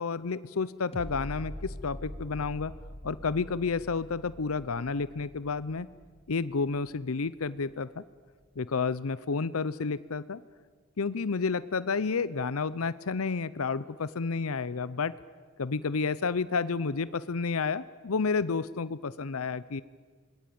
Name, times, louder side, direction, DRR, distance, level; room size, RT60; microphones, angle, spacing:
voice 1, 0.0-2.7 3.0-5.9 6.3-8.0 8.6-10.4 11.0-15.1 15.6-19.8, left 4 dB, 85° left, 16 dB, 0.7 m, -30 dB
sound 1, 0.9-8.0 8.4-8.5, left 1 dB, 25° left, 1.1 m, -44 dB
26.0 x 21.0 x 8.7 m, 1.5 s
head